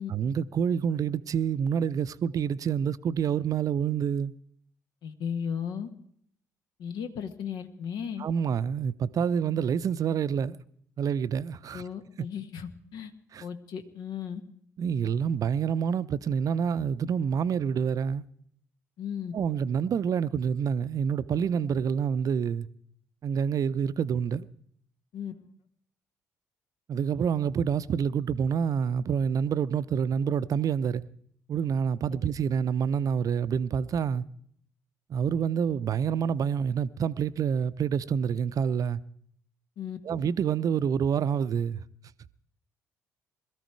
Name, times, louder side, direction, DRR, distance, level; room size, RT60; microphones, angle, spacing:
voice 1, 0.1-4.3 8.2-10.6 11.0-11.8 13.3-13.4 14.8-18.2 19.3-22.7 23.2-24.5 26.9-31.0 31.5-34.2 35.1-39.0 40.0-41.8, right 7 dB, 45° right, 0.6 m, -27 dB
voice 2, 5.0-5.9 6.8-8.2 11.7-13.1 13.4-14.4 19.0-19.3 25.1-25.3 39.8-40.0, left 7 dB, 60° left, 1.5 m, -35 dB
21.5 x 14.0 x 4.7 m
figure-of-eight pair, 45°, 8 cm